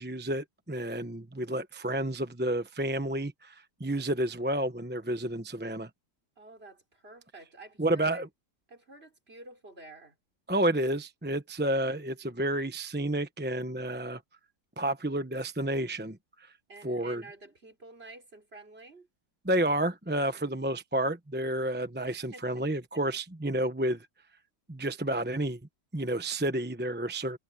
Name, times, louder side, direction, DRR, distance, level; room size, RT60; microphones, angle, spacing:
voice 1, 0.0-5.9 7.8-8.3 10.5-14.2 14.8-16.5 16.8-17.2 19.4-24.1 24.7-25.6 25.9-27.4, right 1 dB, 10° right, 0.7 m, -30 dB
voice 2, 6.4-8.2 8.7-10.2 16.7-19.1 22.1-22.6, right 2 dB, 35° right, 4.8 m, -50 dB
omnidirectional pair, 1.8 m